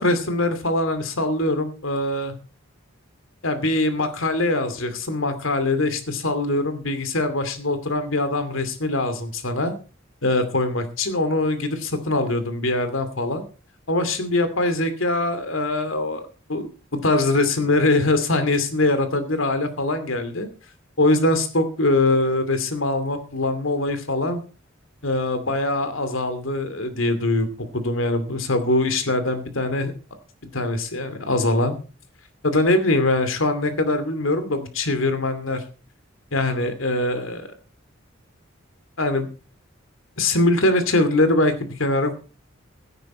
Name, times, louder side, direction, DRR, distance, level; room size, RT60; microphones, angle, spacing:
voice 1, 0.0-2.3 3.4-9.7 10.2-13.4 13.9-16.2 16.5-16.7 16.9-20.5 21.0-24.4 25.0-27.5 27.7-29.9 30.5-31.8 32.4-35.6 36.3-37.5 39.0-39.3 40.2-42.1, left 2 dB, 80° left, 10 dB, 2.6 m, -22 dB
16.5 x 9.6 x 4.3 m, 0.34 s
head